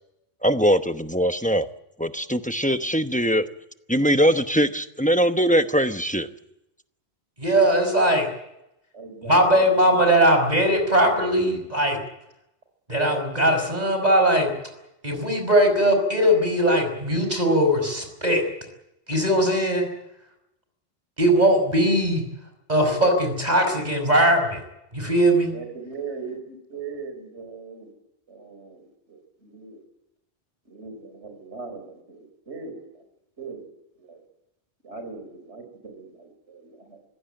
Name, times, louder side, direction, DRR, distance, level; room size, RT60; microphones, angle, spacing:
voice 1, 0.4-1.7 2.0-3.5 3.9-6.3, equal, 10° left, 8 dB, 0.8 m, -21 dB
voice 2, 7.4-8.3 9.3-12.0 12.9-14.5 15.0-18.4 19.1-19.9 21.2-22.2 22.7-24.6 24.9-25.5, right 1 dB, 40° right, 5 dB, 5.4 m, -20 dB
voice 3, 8.9-9.7 25.5-27.9 28.3-29.8 30.7-32.8 33.4-33.6 34.0-34.2 34.8-37.0, right 4 dB, 90° right, 6 dB, 5.2 m, -39 dB
25.0 x 16.5 x 9.0 m, 0.86 s
omnidirectional pair, 1.1 m